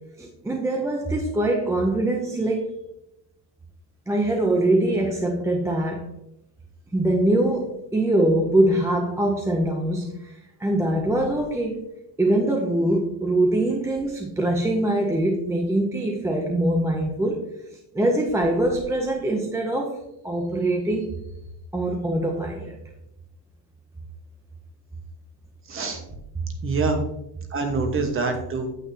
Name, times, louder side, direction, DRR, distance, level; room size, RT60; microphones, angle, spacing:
voice 1, 0.2-2.6 4.1-6.0 6.9-11.8 12.2-17.4 17.9-21.1 21.7-22.8, right 1 dB, 5° right, 1 dB, 0.6 m, -23 dB
voice 2, 25.7-26.0 26.6-27.0 27.5-28.7, right 3 dB, 25° right, 5 dB, 1.3 m, -25 dB
8.9 x 8.1 x 2.8 m, 0.83 s
cardioid pair, 155°, 47 cm